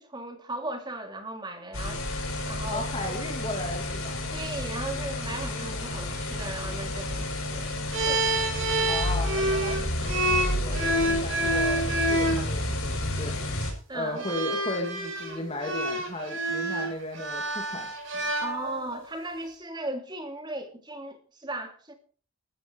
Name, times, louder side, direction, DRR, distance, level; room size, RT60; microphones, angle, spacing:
voice 1, 0.0-2.0 2.4-3.3 4.3-8.6 13.9-14.2 18.4-21.9, right 2 dB, 20° right, 2.9 m, -37 dB
sound 1, 1.7-13.7, left 1 dB, 85° left, 7.0 m, -31 dB
voice 2, 2.7-4.2 8.8-13.4 13.9-18.3, left 1 dB, 30° left, 2.6 m, -36 dB
sound 2, 7.9-12.4 13.4-13.7 14.2-19.0, right 1 dB, 60° right, 6.3 m, -28 dB
14.5 x 14.0 x 4.8 m
head